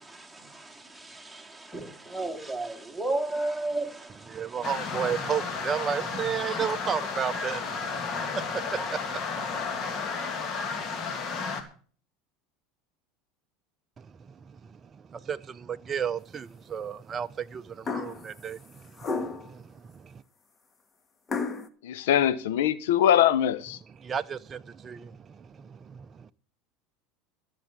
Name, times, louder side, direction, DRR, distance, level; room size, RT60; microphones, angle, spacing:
voice 1, 0.0-4.7 6.5-6.6, right 2 dB, ahead, 2.6 m, -34 dB
voice 2, 4.3-9.6 14.0-14.1 14.5-20.2 24.0-26.3, right 7 dB, 30° right, 0.5 m, -34 dB
sound 1, 4.6-11.6, left 5 dB, 45° left, 2.5 m, -33 dB
sound 2, 17.9-18.3 19.0-19.5 21.3-21.7, left 4 dB, 25° left, 1.5 m, -31 dB
voice 3, 21.8-23.8, left 10 dB, 80° left, 0.8 m, -22 dB
13.5 x 7.1 x 7.3 m
hypercardioid pair, 95°, 0 cm